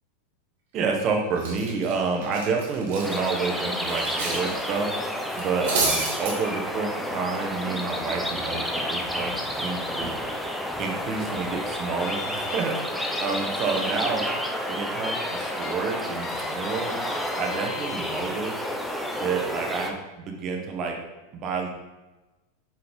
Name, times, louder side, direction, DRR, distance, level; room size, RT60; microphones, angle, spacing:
voice 1, 0.7-4.9 5.4-8.6 8.9-9.3 9.6-10.1 10.8-12.7 13.2-14.3 14.7-16.9 17.4-18.5 19.2-20.9 21.3-21.7, right 4 dB, 40° right, 2 dB, 1.4 m, -29 dB
Cutlery silverware, 0.8-1.0 1.4-4.5 4.7-4.9 5.3-6.3, right 3 dB, 65° right, 1.9 m, -30 dB
sound 1, 3.0-19.9, equal, ahead, 0.9 m, -30 dB
sound 2, 12.0-14.0 14.3-14.5 15.0-15.8 16.2-18.2, left 5 dB, 35° left, 0.8 m, -38 dB
7.4 x 4.7 x 3.8 m, 1.1 s
hypercardioid pair, 95°, 0 cm